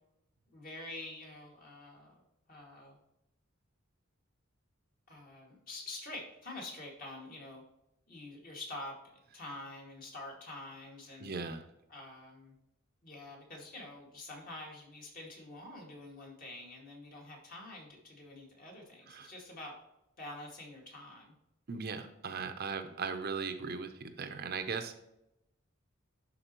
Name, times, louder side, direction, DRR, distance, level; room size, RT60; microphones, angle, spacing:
voice 1, 0.5-2.2 2.5-3.0 5.1-7.6 8.1-9.0 9.3-11.3 11.9-12.6 13.0-19.7 20.2-21.3, left 2 dB, 45° left, -1 dB, 2.2 m, -47 dB
voice 2, 11.2-11.6 19.1-19.3 21.7-25.0, right 5 dB, 50° right, 8 dB, 0.6 m, -38 dB
11.0 x 4.2 x 3.0 m, 0.86 s
head